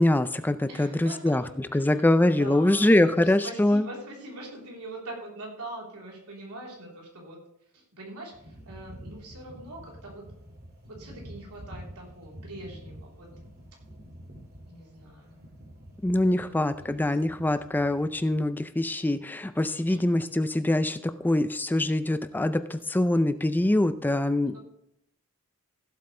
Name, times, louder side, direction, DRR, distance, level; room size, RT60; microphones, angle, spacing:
voice 1, 0.0-1.4 1.7-3.8 16.0-24.6, left 1 dB, 10° left, 12 dB, 0.4 m, -24 dB
voice 2, 0.7-7.4 7.7-10.2 10.9-13.3 14.7-15.5 16.2-16.6 17.1-17.5 19.9-20.0 24.5-24.6, right 2 dB, 85° right, -2 dB, 3.7 m, -43 dB
sound 1, 8.3-18.5, equal, 45° right, 2.4 m, -48 dB
16.0 x 7.9 x 3.3 m, 0.78 s
head